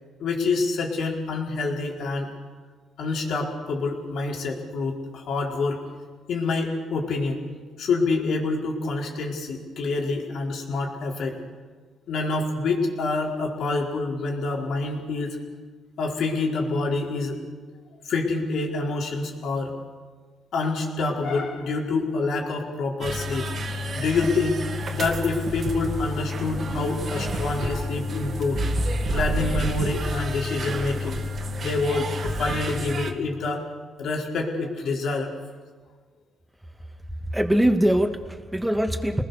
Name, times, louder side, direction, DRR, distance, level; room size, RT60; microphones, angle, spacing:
voice 1, 0.2-2.3 3.0-5.8 6.3-7.4 7.8-11.4 12.1-15.4 16.0-17.4 18.0-19.7 20.5-23.5 23.9-24.6 24.9-28.6 29.1-31.2 31.6-33.6 34.0-35.3, left 3 dB, 70° left, -1 dB, 4.8 m, -27 dB
sound 1, 23.0-33.1, equal, 50° right, 2.5 m, -29 dB
voice 2, 37.3-39.2, right 1 dB, 5° right, 4 dB, 2.4 m, -22 dB
29.5 x 20.0 x 6.9 m, 1.5 s
cardioid pair, 90°, 0 cm